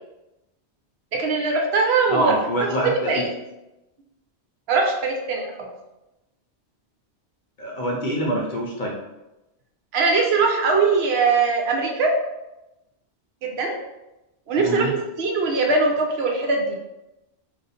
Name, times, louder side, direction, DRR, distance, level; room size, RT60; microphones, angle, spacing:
voice 1, 1.2-2.4 2.8-3.3 4.7-5.7 9.9-12.1 13.4-13.8 14.5-14.9 15.2-16.8, right 4 dB, 70° right, 1 dB, 0.8 m, -21 dB
voice 2, 2.1-3.3 7.6-8.9 14.6-14.9, right 1 dB, 55° left, -2 dB, 0.7 m, -25 dB
2.5 x 2.4 x 4.0 m, 0.96 s
omnidirectional pair, 1.1 m